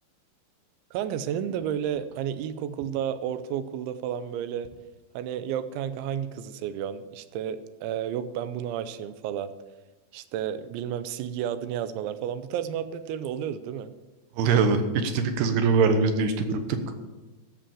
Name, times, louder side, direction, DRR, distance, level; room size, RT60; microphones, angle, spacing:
voice 1, 0.9-4.7 5.1-9.5 10.1-13.9, right 9 dB, 90° right, 12 dB, 3.1 m, -32 dB
voice 2, 14.4-16.8, right 5 dB, 75° right, 8 dB, 2.9 m, -23 dB
14.0 x 6.9 x 7.3 m, 1.1 s
omnidirectional pair, 5.2 m